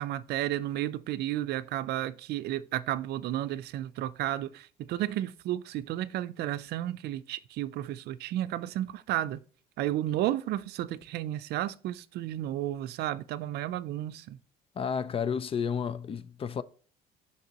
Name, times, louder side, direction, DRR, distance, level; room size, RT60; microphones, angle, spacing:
voice 1, 0.0-9.4 9.8-14.4, right 13 dB, 75° right, 0.5 m, -32 dB
voice 2, 14.8-16.6, left 7 dB, 35° left, 0.4 m, -31 dB
6.6 x 5.3 x 2.9 m
cardioid pair, 110°, 17 cm